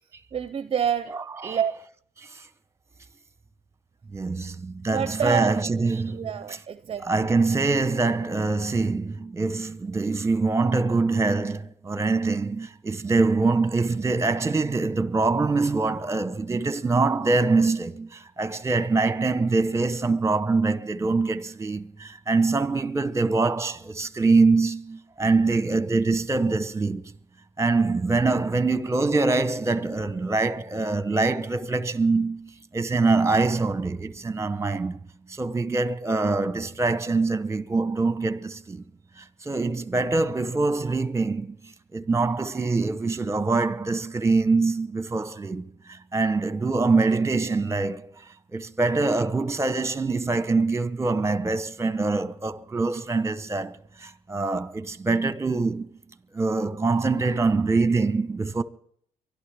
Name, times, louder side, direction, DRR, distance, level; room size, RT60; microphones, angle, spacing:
voice 1, 0.3-1.7 4.9-5.6 6.1-7.3, right 8 dB, 40° right, 0.6 m, -28 dB
voice 2, 1.1-1.8 2.3-2.4 4.1-6.6 7.0-27.0 27.6-35.0 35.3-38.8 39.2-48.2 48.5-55.9 56.3-58.6, right 3 dB, 20° right, 1.0 m, -24 dB
24.0 x 12.0 x 3.5 m
supercardioid pair, 65°, 14 cm